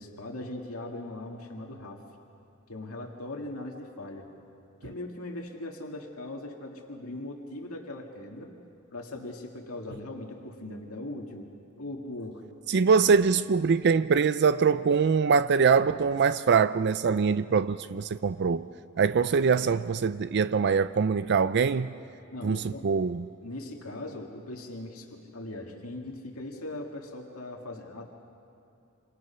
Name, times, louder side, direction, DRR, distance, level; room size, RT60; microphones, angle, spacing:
voice 1, 0.0-2.0 2.7-4.3 4.8-8.5 8.9-11.5 11.8-12.4 12.8-12.9 22.3-22.9 23.4-28.1, left 2 dB, 80° left, 2.1 m, -39 dB
voice 2, 12.7-18.7 19.0-21.9 22.4-23.3, right 5 dB, 55° right, 0.4 m, -23 dB
27.5 x 26.5 x 5.8 m
head